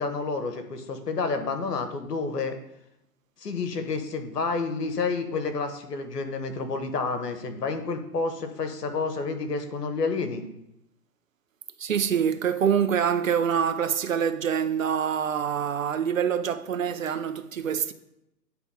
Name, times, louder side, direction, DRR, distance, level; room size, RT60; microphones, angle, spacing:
voice 1, 0.0-2.6 3.4-10.4, left 4 dB, 70° left, 1.2 m, -29 dB
voice 2, 11.8-17.9, right 8 dB, 55° right, 0.6 m, -25 dB
9.2 x 3.4 x 4.8 m
figure-of-eight pair, 140°, 50 cm